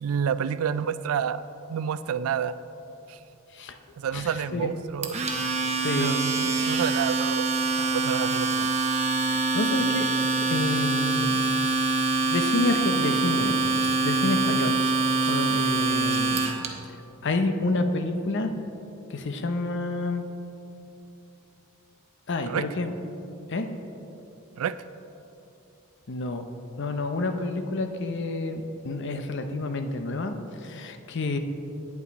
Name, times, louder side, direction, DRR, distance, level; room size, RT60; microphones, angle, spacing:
voice 1, 0.0-1.4 1.7-2.5 3.1-3.2 4.0-5.2 5.9-7.5 7.8-8.7 22.5-22.7 24.6-24.7, right 7 dB, 80° right, 15 dB, 0.3 m, -29 dB
voice 2, 4.1-4.7 5.8-6.1 9.2-11.5 12.2-13.7 14.0-14.8 15.2-16.5 17.2-18.5 19.1-20.3 22.3-22.9 23.5-23.7 26.1-26.5 26.8-31.4, left 2 dB, 55° left, 7 dB, 0.7 m, -29 dB
Domestic sounds home sounds, 5.0-16.7, right 3 dB, 30° right, 0.8 m, -25 dB
9.4 x 8.4 x 4.1 m, 2.9 s
head